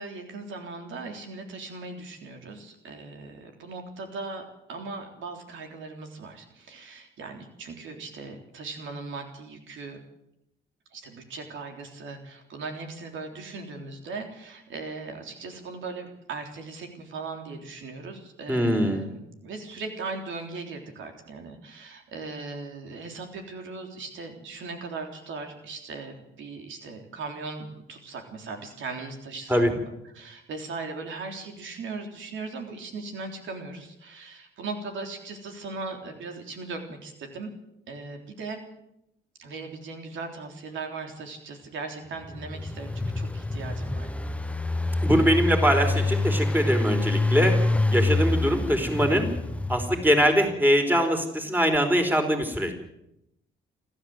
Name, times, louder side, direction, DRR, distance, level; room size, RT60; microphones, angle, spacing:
voice 1, 0.0-10.0 10.9-37.5 37.9-38.6 39.4-44.1, right 3 dB, 75° right, 4 dB, 3.7 m, -38 dB
voice 2, 18.5-19.1 29.5-29.7 45.0-47.6 47.9-49.3 49.7-52.7, equal, 10° right, 5 dB, 4.4 m, -22 dB
Engine, 42.2-50.3, left 2 dB, 5° left, 1.1 m, -26 dB
28.0 x 12.5 x 7.9 m, 0.84 s
cardioid pair, 90°, 20 cm